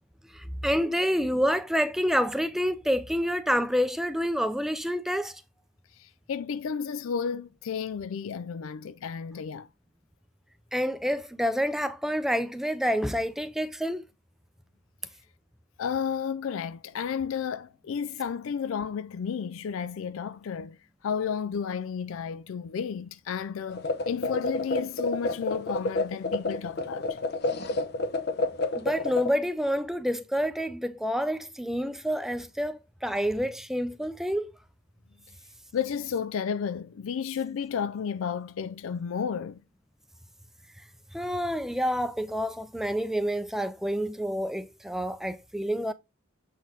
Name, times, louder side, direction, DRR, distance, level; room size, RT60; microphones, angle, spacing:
voice 1, 0.3-5.4 10.7-14.0 28.7-34.5 41.1-45.9, equal, ahead, 0.5 m, -28 dB
voice 2, 6.0-9.7 15.8-20.8 21.0-27.2 35.7-39.6, left 7 dB, 75° left, 0.4 m, -32 dB
sound 1, 23.7-29.3, left 2 dB, 50° left, 0.8 m, -29 dB
7.2 x 4.3 x 3.9 m
head